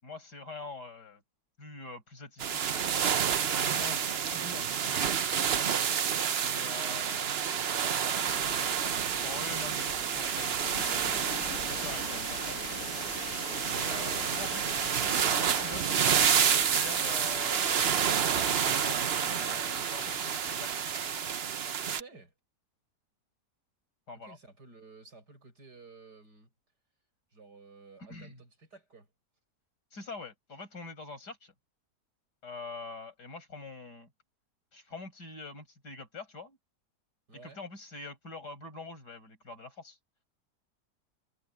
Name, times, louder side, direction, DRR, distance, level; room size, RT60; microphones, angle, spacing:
voice 1, 0.0-1.2 1.6-3.1 3.5-5.2 6.4-7.3 9.2-11.4 11.7-12.7 13.7-15.0 15.3-17.7 18.4-20.8 24.1-24.4 28.1-28.4 29.9-31.5 32.4-34.1 34.7-36.6 37.3-40.0, left 3 dB, 85° left, 6.5 m, -45 dB
sound 1, 2.4-22.0, right 8 dB, 50° right, 0.8 m, -29 dB
voice 2, 6.3-7.6 8.0-8.8 13.7-14.3 21.8-22.3 24.1-26.5 27.3-29.1 37.3-37.6, right 3 dB, 80° right, 8.2 m, -53 dB
sound 2, 8.3-21.3, left 4 dB, 65° left, 2.6 m, -43 dB
omnidirectional pair, 1.7 m